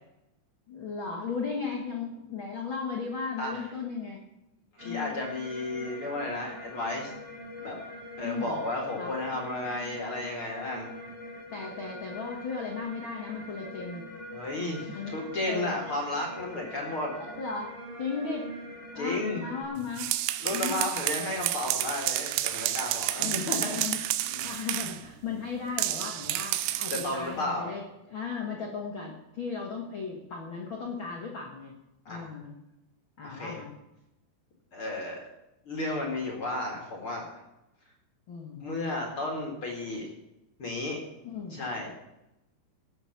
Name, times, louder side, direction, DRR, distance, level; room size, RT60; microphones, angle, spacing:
voice 1, 0.7-4.2 4.8-5.2 8.2-8.6 9.0-9.1 11.5-14.1 14.9-15.8 17.2-17.7 18.0-18.5 18.9-20.1 20.5-20.8 23.2-31.7 32.1-32.5 33.2-33.7 38.3-38.7 41.2-41.6, left 5 dB, 80° left, 0 dB, 1.1 m, -36 dB
voice 2, 4.8-7.1 7.6-7.8 8.2-10.9 14.3-17.1 18.9-19.5 20.4-23.8 26.9-27.7 32.1-32.3 33.2-33.6 34.7-35.2 35.7-37.4 38.6-40.1 40.6-41.0 41.5-41.9, left 2 dB, 45° left, -1 dB, 2.0 m, -33 dB
sound 1, 4.8-19.6, left 1 dB, 20° right, 4.6 m, -43 dB
sound 2, 19.8-25.0 25.8-27.2, right 14 dB, 90° right, 3.1 m, -30 dB
18.5 x 8.1 x 6.0 m, 0.93 s
omnidirectional pair, 5.2 m